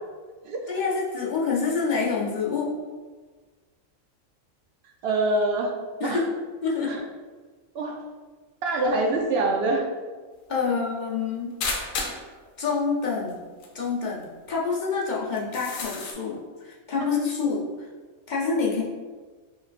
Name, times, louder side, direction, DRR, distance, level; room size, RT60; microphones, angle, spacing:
voice 1, 0.7-2.8 6.0-6.3 6.6-7.0 10.5-11.6 12.6-13.5 13.7-17.7 18.3-18.8, left 5 dB, 45° left, -4 dB, 0.6 m, -27 dB
voice 2, 5.0-5.7 6.0-6.2 6.9-7.0 7.7-8.0 8.6-9.8 10.6-10.7 17.0-17.1, right 2 dB, 65° right, 2 dB, 0.7 m, -24 dB
sound 1, 11.6-12.3 13.3-13.4 13.6-13.7 14.2-14.3 15.4-16.1, left 4 dB, 85° left, 1.1 m, -31 dB
5.3 x 3.2 x 2.4 m, 1.4 s
omnidirectional pair, 1.4 m